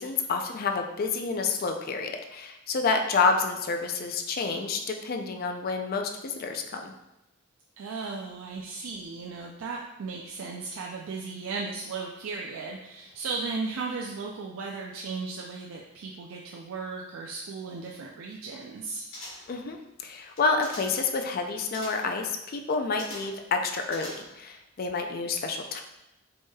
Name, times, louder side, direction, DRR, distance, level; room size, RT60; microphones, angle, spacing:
voice 1, 0.0-6.9 19.5-25.8, left 4 dB, 45° left, 4 dB, 0.4 m, -29 dB
voice 2, 7.8-19.1, right 4 dB, 85° right, -1 dB, 0.4 m, -36 dB
sound 1, 19.1-19.6 20.3-21.1 21.7-22.2 23.0-23.4 23.9-24.5 24.8-24.9, left 1 dB, 80° left, 1.1 m, -43 dB
4.4 x 3.1 x 2.2 m, 0.90 s
head